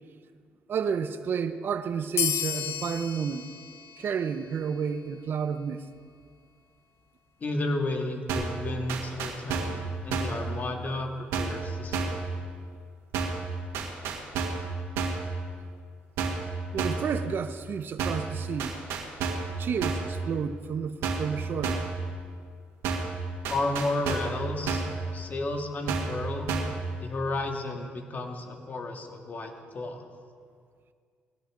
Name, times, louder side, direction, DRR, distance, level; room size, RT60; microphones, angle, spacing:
voice 1, 0.7-3.5 4.0-5.9 16.7-18.8 19.6-21.9, right 7 dB, 55° right, 0.8 m, -31 dB
sound 1, 2.2-5.2, left 9 dB, 75° left, 1.2 m, -33 dB
voice 2, 7.4-11.1 11.4-12.3 23.5-24.8 25.1-26.5 27.0-30.1, left 2 dB, 40° left, 2.1 m, -32 dB
sound 2, 8.3-8.6 8.9-9.8 10.1-10.4 11.3-11.6 11.9-12.2 13.1-13.5 13.7-14.7 14.9-15.3 16.2-16.5 16.8-17.1 18.0-18.3 18.6-19.5 19.8-20.1 21.0-21.3 21.6-22.0 22.8-23.2 23.4-24.4 24.7-25.0 25.9-26.2 26.5-26.8, right 4 dB, 90° right, 1.9 m, -30 dB
20.0 x 17.0 x 3.9 m
cardioid pair, 85°, 4 cm